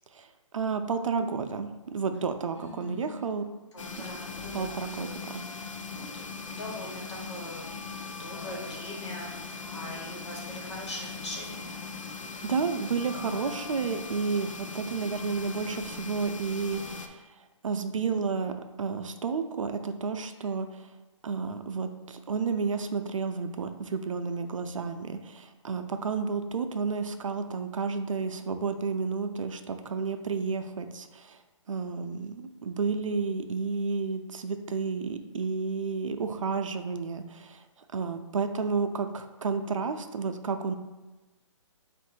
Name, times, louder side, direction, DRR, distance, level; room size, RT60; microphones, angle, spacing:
voice 1, 0.5-3.5 4.0-4.1 4.5-5.4 12.4-17.2 17.6-20.9 21.2-31.4 31.7-37.6 37.9-40.7, right 5 dB, 80° right, 8 dB, 0.4 m, -31 dB
voice 2, 2.4-3.4 3.7-5.2 5.5-11.8, left 1 dB, 60° left, -2 dB, 1.4 m, -42 dB
sound 1, 3.8-17.1, left 4 dB, 75° left, 0.5 m, -40 dB
3.7 x 2.5 x 4.4 m, 1.1 s
hypercardioid pair, 165°, 16 cm